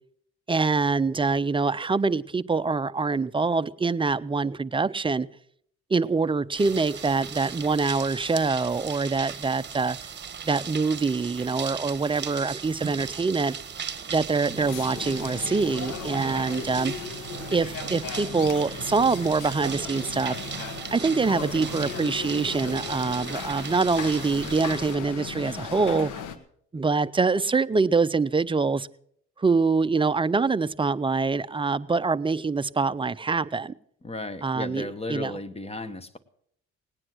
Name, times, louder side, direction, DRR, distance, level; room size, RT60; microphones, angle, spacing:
voice 1, 0.5-5.3 5.9-10.0 10.4-13.6 14.1-16.9 17.5-20.4 20.9-26.1 26.7-28.9 29.4-33.7 34.4-35.3, right 4 dB, 15° right, 0.5 m, -25 dB
sound 1, 6.6-24.9, right 7 dB, 35° right, 1.3 m, -38 dB
sound 2, 14.1-22.6, right 12 dB, 65° right, 0.8 m, -44 dB
sound 3, 14.6-26.4, left 7 dB, 85° left, 1.4 m, -37 dB
voice 2, 34.0-36.2, left 2 dB, 20° left, 1.2 m, -35 dB
18.5 x 9.8 x 6.2 m
cardioid pair, 90°, 30 cm